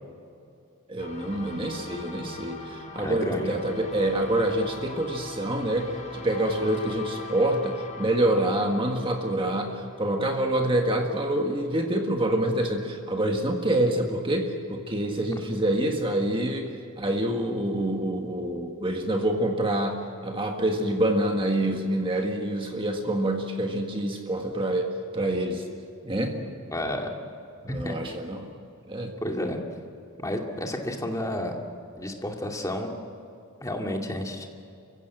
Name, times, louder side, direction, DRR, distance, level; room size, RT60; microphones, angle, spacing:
voice 1, 0.9-24.9 25.1-25.6 26.0-26.4 27.6-28.5 28.9-29.1, right 1 dB, 25° right, 3 dB, 1.7 m, -26 dB
sound 1, 1.0-10.2, left 2 dB, 35° left, 4.3 m, -41 dB
voice 2, 3.0-3.5 26.7-27.1 27.7-28.0 29.2-29.6 30.2-31.5 32.0-32.9 33.6-34.5, left 1 dB, 15° left, 1 dB, 2.4 m, -31 dB
29.5 x 16.0 x 8.9 m, 2.6 s
head